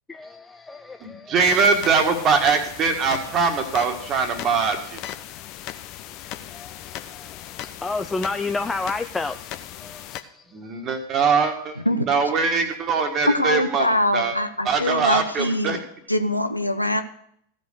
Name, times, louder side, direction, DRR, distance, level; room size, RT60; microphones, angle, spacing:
voice 1, 0.1-1.3 5.3-5.4 6.5-10.8, left 3 dB, 10° left, 0.4 m, -31 dB
voice 2, 1.0-5.0 10.5-11.8 12.1-13.9 14.1-14.3 14.7-15.8, right 5 dB, 30° right, 1.8 m, -22 dB
sound 1, 1.4-10.2, left 12 dB, 40° left, 0.7 m, -37 dB
voice 3, 13.3-15.8 16.1-17.0, left 1 dB, 85° left, 0.8 m, -23 dB
15.5 x 5.3 x 6.7 m
figure-of-eight pair, 90°, 0 cm